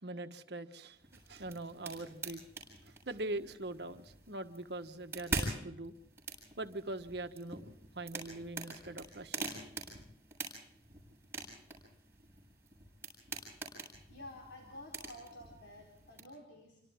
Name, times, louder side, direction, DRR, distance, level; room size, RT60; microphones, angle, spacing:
voice 1, 0.0-2.4 2.8-5.9 6.6-7.7 7.9-9.5, right 2 dB, 65° right, 8 dB, 1.4 m, -42 dB
sound 1, 0.9-16.2, right 3 dB, 15° right, 7.5 m, -45 dB
voice 2, 14.1-16.8, left 1 dB, 70° left, 0 dB, 4.2 m, -51 dB
28.5 x 25.0 x 3.7 m, 0.77 s
head